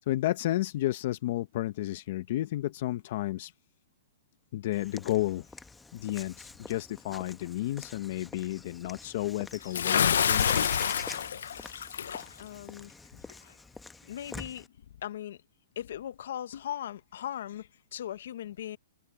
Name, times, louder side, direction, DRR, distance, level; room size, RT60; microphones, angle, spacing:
voice 1, 0.1-3.5 4.5-5.4 5.9-10.8, left 15 dB, 50° left, 0.7 m, -32 dB
Walk footsteps / Bird vocalization bird call bird song, 4.7-14.7, left 3 dB, 5° left, 0.9 m, -47 dB
Bathtub (filling or washing) / Splash splatter, 9.7-12.2, left 8 dB, 85° left, 0.5 m, -27 dB
voice 2, 12.4-13.2 14.0-14.7 15.0-15.4 15.8-18.8, left 11 dB, 70° left, 1.0 m, -39 dB
hypercardioid pair, 155°, 0 cm